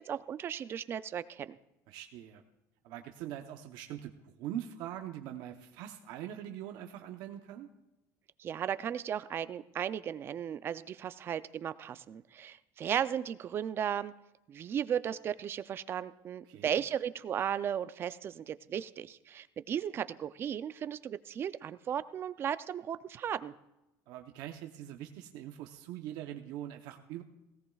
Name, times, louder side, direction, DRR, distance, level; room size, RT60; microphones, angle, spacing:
voice 1, 0.0-1.6 8.4-14.1 14.5-23.5, right 9 dB, 30° right, 14 dB, 0.4 m, -35 dB
voice 2, 1.9-2.4 2.8-7.7 16.5-16.8 24.1-27.2, right 11 dB, 65° right, 5 dB, 0.8 m, -43 dB
17.5 x 17.0 x 2.4 m, 0.94 s
cardioid pair, 155°, 8 cm